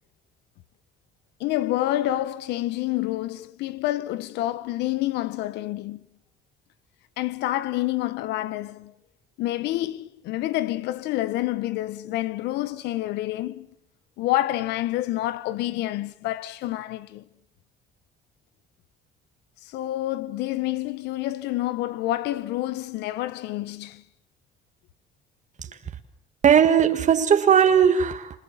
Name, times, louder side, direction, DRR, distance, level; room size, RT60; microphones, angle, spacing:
voice 1, 1.4-6.1 7.2-8.9 9.4-13.7 14.2-17.2 19.6-24.0, left 15 dB, 85° left, 1.3 m, -28 dB
voice 2, 26.4-28.4, right 8 dB, 45° right, 1.8 m, -18 dB
29.0 x 27.0 x 7.4 m
cardioid pair, 110°, 17 cm